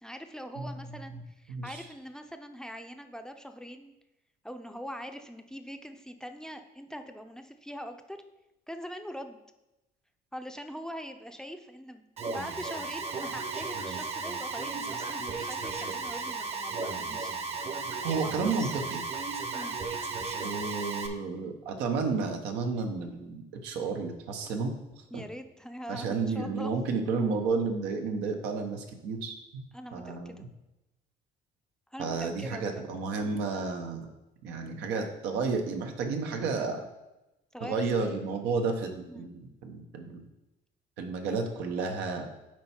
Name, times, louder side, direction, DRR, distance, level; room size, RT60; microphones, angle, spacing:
voice 1, 0.0-3.9 4.4-8.2 8.7-9.4 10.3-17.4 18.2-18.7 19.5-19.8 25.1-26.7 29.7-30.4 31.9-32.9 37.5-37.8 39.1-39.3, equal, 5° left, 7 dB, 0.5 m, -42 dB
voice 2, 1.5-1.8 18.0-19.0 20.4-24.7 25.1-25.2 25.9-29.6 29.9-30.5 32.0-34.1 34.4-36.8 37.6-40.2 41.0-42.3, right 4 dB, 90° right, 4 dB, 1.0 m, -32 dB
Alarm, 12.2-21.1, right 4 dB, 40° right, 0.9 m, -35 dB
7.5 x 4.7 x 4.4 m, 0.96 s
cardioid pair, 110°, 17 cm